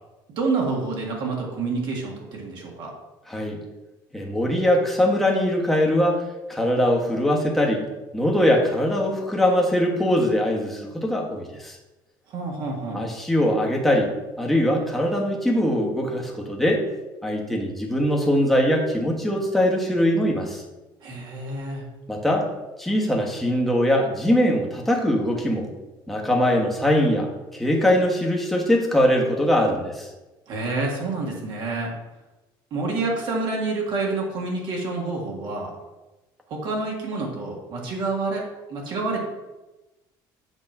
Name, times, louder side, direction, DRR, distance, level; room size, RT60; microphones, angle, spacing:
voice 1, 0.4-2.9 12.3-13.1 21.0-21.9 30.5-31.9 32.7-35.7 36.5-39.2, right 3 dB, 55° right, -1 dB, 1.8 m, -28 dB
voice 2, 3.3-3.6 4.1-7.8 8.1-11.8 12.9-14.1 14.4-16.9 17.2-20.6 22.1-22.5 22.8-25.7 26.1-30.1, equal, ahead, -1 dB, 1.3 m, -22 dB
7.9 x 3.0 x 6.0 m, 1.1 s
cardioid pair, 130°, 9 cm